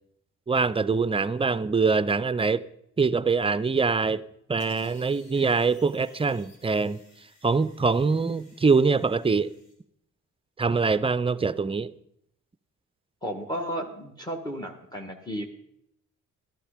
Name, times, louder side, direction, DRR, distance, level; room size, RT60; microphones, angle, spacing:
voice 1, 0.5-2.7 3.0-4.2 4.5-7.0 7.4-9.5 10.6-11.9, right 4 dB, 20° right, 0.5 m, -24 dB
sound 1, 4.6-9.7, left 1 dB, 85° left, 4.2 m, -57 dB
voice 2, 13.2-15.5, equal, 15° left, 1.7 m, -33 dB
12.5 x 12.0 x 5.0 m
cardioid pair, 90°, 30 cm